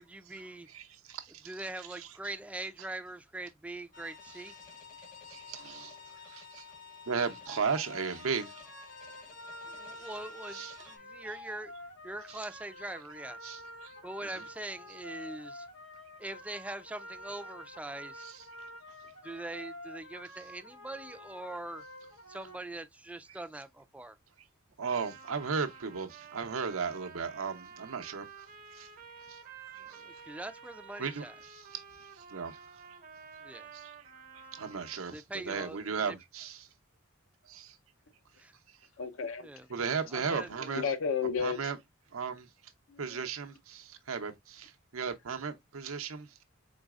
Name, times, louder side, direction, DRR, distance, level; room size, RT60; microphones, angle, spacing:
voice 1, 0.0-0.7 1.5-4.5 9.7-11.7 12.0-13.6 14.0-15.7 16.2-18.3 19.2-21.8 22.3-24.2 29.8-31.4 33.4-33.7 35.1-36.2 38.4-38.6 39.4-39.7 40.1-40.7, right 2 dB, 5° right, 0.4 m, -42 dB
voice 2, 0.7-1.6 1.9-2.1 5.0-6.0 6.2-6.7 7.1-8.6 10.0-10.1 10.5-10.9 12.3-12.4 13.4-13.9 14.3-14.4 18.2-18.7 23.3-23.4 24.8-28.5 28.7-28.9 29.3-29.4 29.7-30.2 31.0-31.8 32.1-33.0 33.7-36.7 37.5-37.8 39.7-40.8 41.4-41.8 42.1-42.5 43.0-46.4, right 5 dB, 85° right, 0.7 m, -36 dB
sound 1, 3.9-11.0, left 5 dB, 40° left, 0.9 m, -51 dB
sound 2, 7.4-22.5, equal, 90° left, 1.2 m, -48 dB
Trumpet, 24.8-35.2, right 6 dB, 45° right, 0.6 m, -51 dB
voice 3, 39.0-39.5 40.3-41.6 42.9-43.3, left 6 dB, 70° left, 0.6 m, -33 dB
3.9 x 3.9 x 2.3 m
head